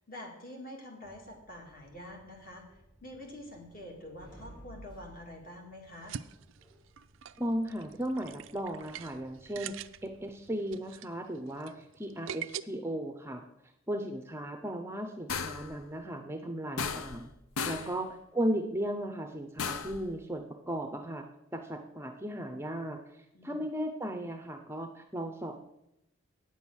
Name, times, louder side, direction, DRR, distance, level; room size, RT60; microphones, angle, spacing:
voice 1, 0.0-6.2 17.7-18.0 23.3-23.6, left 1 dB, 40° left, 1 dB, 2.1 m, -47 dB
sound 1, 1.0-10.3, right 1 dB, 20° left, 2.7 m, -58 dB
sound 2, 5.9-12.6, right 9 dB, 60° right, 0.4 m, -44 dB
voice 2, 7.4-9.8 10.0-13.4 13.9-17.3 17.7-21.2 21.5-25.6, right 1 dB, 10° right, 5 dB, 0.5 m, -36 dB
sound 3, 15.3-15.7 16.8-17.3 17.6-18.0 19.6-20.0, left 5 dB, 80° left, 0.6 m, -35 dB
8.8 x 7.3 x 6.2 m, 0.84 s
head